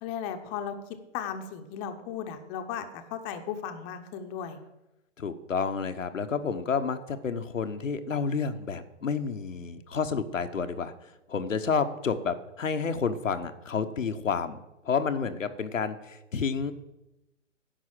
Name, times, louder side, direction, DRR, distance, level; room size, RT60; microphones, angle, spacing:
voice 1, 0.0-4.6, left 8 dB, 25° left, 7 dB, 0.9 m, -36 dB
voice 2, 5.2-10.9 11.3-14.6 14.8-16.7, left 5 dB, 90° left, 8 dB, 1.1 m, -30 dB
10.0 x 5.7 x 7.4 m, 0.93 s
hypercardioid pair, 135°, 38 cm